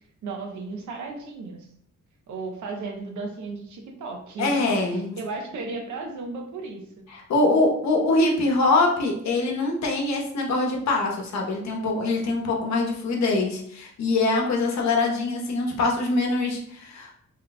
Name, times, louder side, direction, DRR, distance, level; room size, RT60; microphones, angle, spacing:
voice 1, 0.2-1.7 2.3-7.0, right 3 dB, 85° right, 3 dB, 0.8 m, -35 dB
voice 2, 4.4-5.2 7.1-17.1, left 2 dB, 70° left, 0 dB, 0.9 m, -23 dB
3.1 x 2.2 x 4.0 m, 0.66 s
wide cardioid pair, 140°, 29 cm